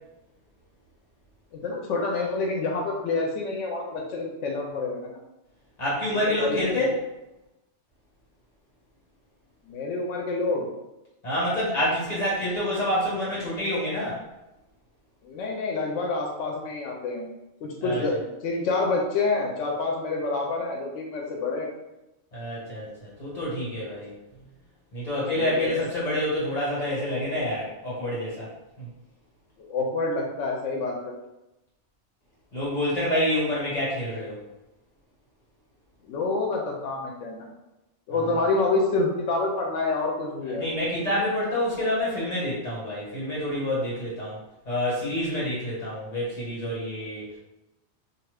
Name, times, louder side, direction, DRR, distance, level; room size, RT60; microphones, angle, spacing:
voice 1, 1.5-5.2 6.1-6.8 9.6-10.7 15.2-17.3 17.6-21.7 25.1-25.8 29.7-31.2 36.0-37.5 38.1-40.7, left 3 dB, 90° left, -1 dB, 0.9 m, -28 dB
voice 2, 5.8-6.9 11.2-14.2 17.8-18.0 22.3-24.1 24.9-28.5 28.8-28.9 32.5-34.4 38.1-38.4 40.6-44.4 44.6-47.4, left 1 dB, 35° left, -7 dB, 1.5 m, -27 dB
2.6 x 2.4 x 3.2 m, 0.95 s
omnidirectional pair, 1.2 m